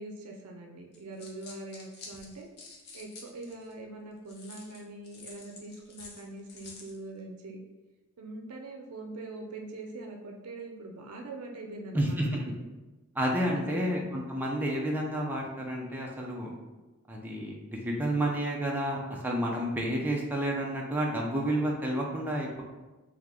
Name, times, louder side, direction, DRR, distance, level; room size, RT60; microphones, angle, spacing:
voice 1, 0.0-2.5 2.9-7.6 8.2-12.4 13.5-14.0, right 2 dB, 85° right, 1 dB, 0.5 m, -43 dB
sound 1, 0.9-3.7 4.3-7.0, left 4 dB, 50° left, 0.6 m, -49 dB
voice 2, 11.9-12.3 13.1-16.5 17.1-22.6, right 1 dB, 10° right, -2 dB, 0.5 m, -30 dB
3.5 x 2.8 x 3.6 m, 1.1 s
head